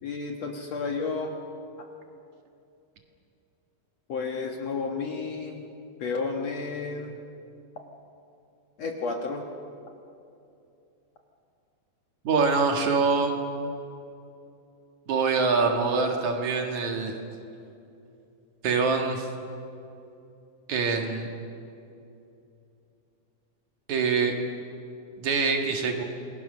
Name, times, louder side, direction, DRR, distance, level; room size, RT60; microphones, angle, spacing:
voice 1, 0.0-1.3 4.1-5.7 6.0-7.2 8.8-9.4, left 4 dB, 55° left, 2 dB, 2.1 m, -31 dB
voice 2, 12.2-13.3 15.1-17.1 18.6-19.3 20.7-21.3 23.9-24.3 25.2-26.0, right 4 dB, 55° right, 3 dB, 2.8 m, -24 dB
27.5 x 21.0 x 6.6 m, 2.7 s
omnidirectional pair, 4.2 m